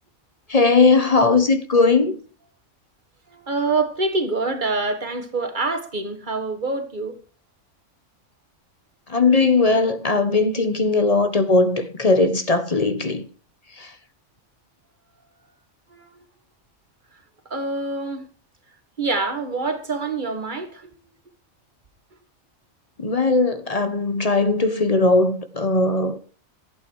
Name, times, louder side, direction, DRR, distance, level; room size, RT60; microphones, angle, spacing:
voice 1, 0.5-2.2 9.1-13.2 23.0-26.2, left 3 dB, 30° left, 1.3 m, -19 dB
voice 2, 3.3-7.2 15.9-16.2 17.5-18.3 19.0-21.0, right 3 dB, 40° right, 1.9 m, -26 dB
15.0 x 8.9 x 4.7 m
omnidirectional pair, 1.2 m